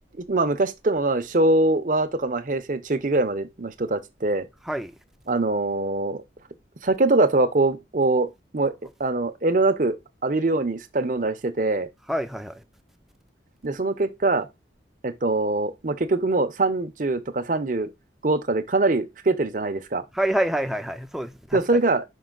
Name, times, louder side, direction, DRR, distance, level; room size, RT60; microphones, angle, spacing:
voice 1, 0.2-4.5 5.3-6.2 6.8-8.3 8.5-8.7 9.0-10.0 10.2-11.9 13.6-14.5 15.0-17.9 18.2-20.0 21.5-22.0, right 2 dB, 45° right, 0.7 m, -23 dB
voice 2, 4.6-4.9 12.1-12.6 20.1-21.6, right 1 dB, ahead, 0.5 m, -27 dB
5.5 x 5.4 x 3.9 m
head